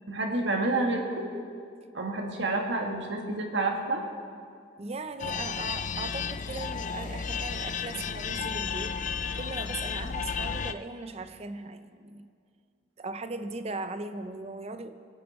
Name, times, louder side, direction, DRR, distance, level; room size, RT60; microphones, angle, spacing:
voice 1, 0.1-1.3 1.9-4.0, right 2 dB, 65° right, 1 dB, 1.7 m, -29 dB
voice 2, 4.8-9.1 9.3-12.3 13.0-14.9, right 3 dB, 30° right, 10 dB, 0.6 m, -38 dB
sound 1, 5.2-10.7, left 6 dB, 40° left, 0.4 m, -33 dB
21.5 x 8.7 x 4.3 m, 2.2 s
head